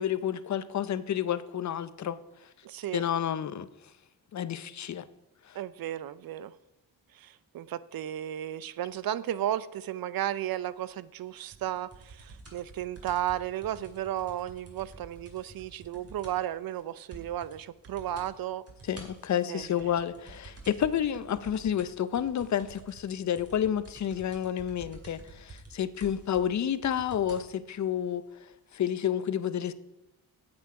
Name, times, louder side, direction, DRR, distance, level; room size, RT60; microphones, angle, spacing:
voice 1, 0.0-2.2 2.9-3.7 4.3-5.0 5.5-5.6 18.9-28.2 28.7-29.7, left 9 dB, 45° left, 15 dB, 0.6 m, -30 dB
voice 2, 2.6-3.0 5.5-6.5 7.1-18.6 19.5-19.6, right 12 dB, 60° right, 17 dB, 0.5 m, -34 dB
sound 1, 11.5-16.5 16.8-16.9 17.1-17.6 17.8-18.3 18.7-27.5 28.3-28.4, right 3 dB, 35° right, 2.5 m, -50 dB
8.4 x 7.9 x 4.8 m, 0.95 s
cardioid pair, 90°, 39 cm